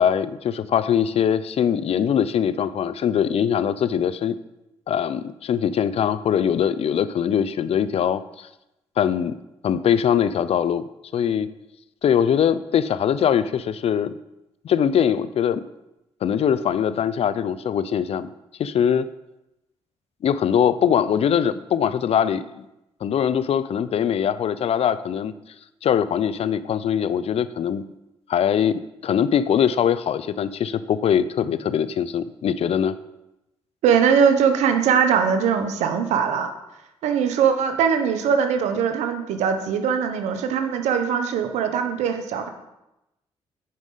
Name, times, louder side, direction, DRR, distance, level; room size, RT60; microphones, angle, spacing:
voice 1, 0.0-4.4 4.9-8.5 9.0-9.3 9.6-10.8 11.1-11.5 12.0-14.1 14.6-15.6 16.2-18.3 18.6-19.1 20.2-22.6 23.0-25.3 25.8-27.8 28.3-33.0, left 8 dB, 60° left, 15 dB, 0.4 m, -22 dB
voice 2, 33.8-36.5 37.0-42.5, right 7 dB, 90° right, 7 dB, 0.8 m, -21 dB
9.4 x 5.2 x 3.8 m, 0.92 s
supercardioid pair, 60°, 11 cm